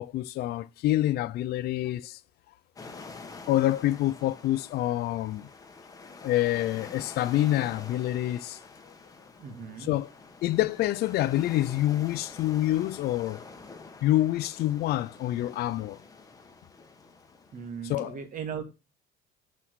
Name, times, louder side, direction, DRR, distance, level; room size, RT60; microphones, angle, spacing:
voice 1, 0.0-2.2 3.5-5.5 6.2-8.6 9.8-10.1 10.4-13.4 14.0-16.0 17.8-18.2, left 14 dB, 55° left, 0.5 m, -27 dB
sound 1, 2.8-17.9, left 4 dB, 20° left, 1.2 m, -47 dB
voice 2, 9.4-9.9 17.5-18.6, right 7 dB, 45° right, 1.7 m, -37 dB
5.7 x 4.7 x 6.1 m
supercardioid pair, 100°, 20 cm